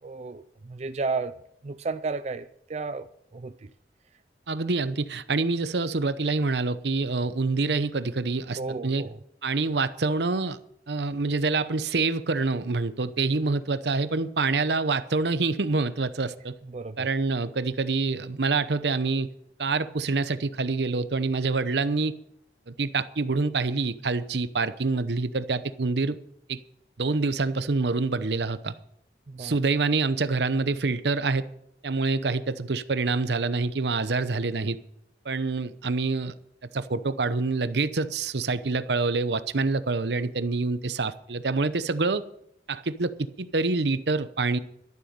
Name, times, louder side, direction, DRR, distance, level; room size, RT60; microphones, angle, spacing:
voice 1, 0.0-1.4 1.6-3.1 3.3-3.7 8.6-9.2 16.7-17.1 29.3-29.6, right 4 dB, 40° right, 0.4 m, -33 dB
voice 2, 4.5-9.0 9.4-10.6 10.9-16.6 17.0-19.3 19.6-22.1 22.7-26.2 26.5-26.6 27.0-28.7 29.4-31.5 31.8-34.8 35.2-36.3 36.7-42.2 42.7-44.6, right 3 dB, 75° right, 0.8 m, -26 dB
12.5 x 11.5 x 5.2 m
head